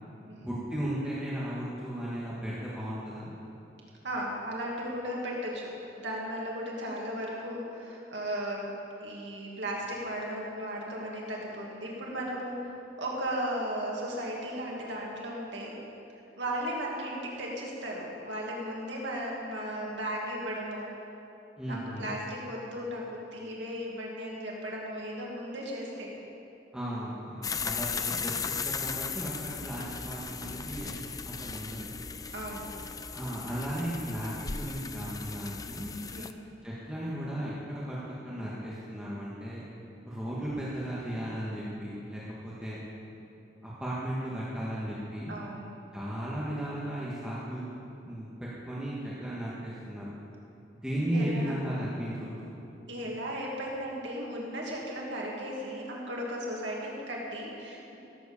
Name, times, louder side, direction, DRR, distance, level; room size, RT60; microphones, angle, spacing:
voice 1, 0.4-3.3 21.6-22.1 26.7-30.9 31.3-31.9 33.1-35.9 36.6-39.6 40.0-42.8 43.6-45.3 45.9-47.7 48.0-50.1 50.8-52.5, right 1 dB, 5° right, -8 dB, 1.7 m, -35 dB
voice 2, 4.0-5.7 6.0-8.7 9.0-12.6 13.0-15.7 16.4-20.9 21.7-26.1 32.3-32.7 36.1-36.3 45.3-45.8 51.1-51.5 52.9-58.0, equal, 75° right, -3 dB, 2.4 m, -36 dB
sound 1, 27.4-36.3, left 5 dB, 20° left, 0.4 m, -37 dB
16.0 x 7.7 x 7.1 m, 2.9 s
head